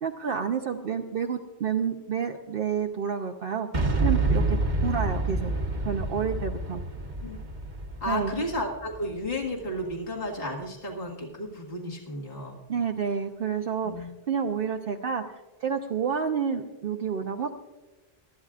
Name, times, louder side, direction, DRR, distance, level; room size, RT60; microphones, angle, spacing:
voice 1, 0.0-3.7 4.0-4.6 4.8-5.5 5.8-6.8 8.1-8.3 12.7-17.5, right 7 dB, 60° right, 3 dB, 0.9 m, -29 dB
Boom, 3.7-9.6, right 2 dB, 45° right, 1.3 m, -28 dB
voice 2, 8.0-12.6 13.8-14.1, left 1 dB, 60° left, -2 dB, 2.1 m, -33 dB
23.5 x 13.0 x 2.5 m, 1.2 s
omnidirectional pair, 1.1 m